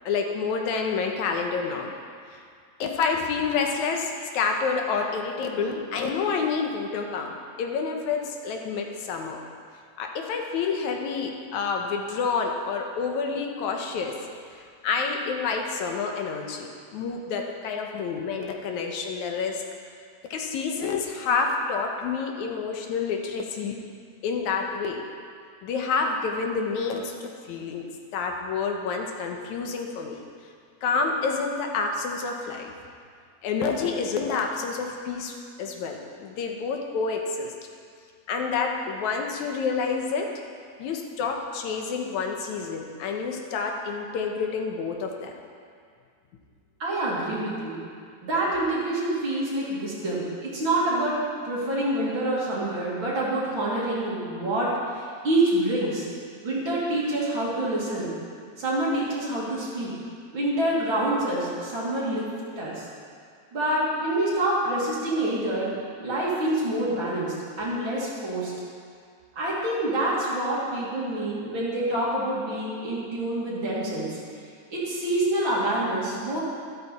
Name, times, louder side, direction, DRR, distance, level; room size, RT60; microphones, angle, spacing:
voice 1, 0.1-1.9 2.8-9.4 10.0-14.2 14.6-19.6 20.3-23.8 24.2-25.0 25.6-27.8 28.1-30.2 30.8-32.7 33.4-37.5 38.3-40.3 40.8-45.3, left 5 dB, 80° left, 2 dB, 2.4 m, -28 dB
voice 2, 46.8-47.8 48.2-56.1 56.4-58.2 58.6-59.9 60.3-62.9 63.5-68.5 69.4-74.2 74.7-76.4, right 1 dB, 45° right, -7 dB, 3.1 m, -27 dB
13.0 x 12.5 x 4.3 m, 2.2 s
omnidirectional pair, 3.3 m